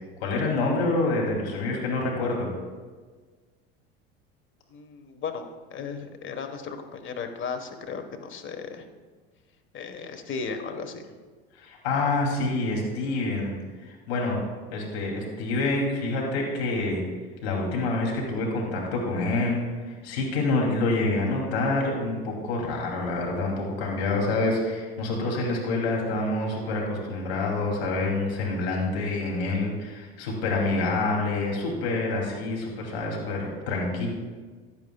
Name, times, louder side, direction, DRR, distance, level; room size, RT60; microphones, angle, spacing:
voice 1, 0.2-2.5 11.5-14.4 14.7-17.0 17.4-34.1, left 2 dB, 75° left, -1 dB, 3.0 m, -27 dB
voice 2, 4.7-8.9 9.7-11.0, left 5 dB, 40° left, 6 dB, 1.4 m, -35 dB
15.5 x 10.5 x 2.4 m, 1.4 s
hypercardioid pair, 85°, 31 cm